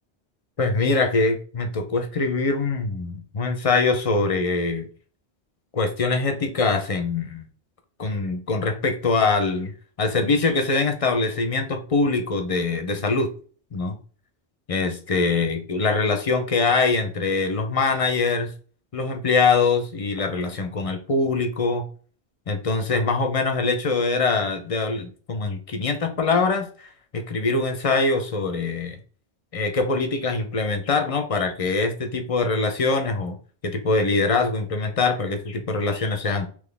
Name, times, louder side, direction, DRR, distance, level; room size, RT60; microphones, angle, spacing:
voice 1, 0.6-4.9 5.7-7.5 8.0-9.7 10.0-13.3 13.7-14.0 14.7-18.5 18.9-21.9 22.5-29.0 29.5-33.4 33.6-36.5, left 3 dB, 40° left, 6 dB, 0.6 m, -23 dB
4.0 x 3.1 x 3.4 m, 0.42 s
omnidirectional pair, 1.1 m